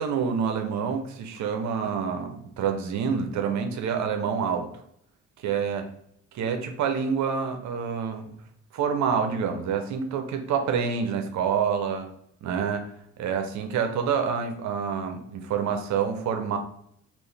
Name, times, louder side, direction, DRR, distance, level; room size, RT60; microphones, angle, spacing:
voice 1, 0.0-4.7 5.4-5.8 6.3-8.3 8.7-12.1 12.4-12.8 13.2-16.6, right 6 dB, 70° right, 5 dB, 0.6 m, -27 dB
3.7 x 2.4 x 3.2 m, 0.71 s
cardioid pair, 90°, 30 cm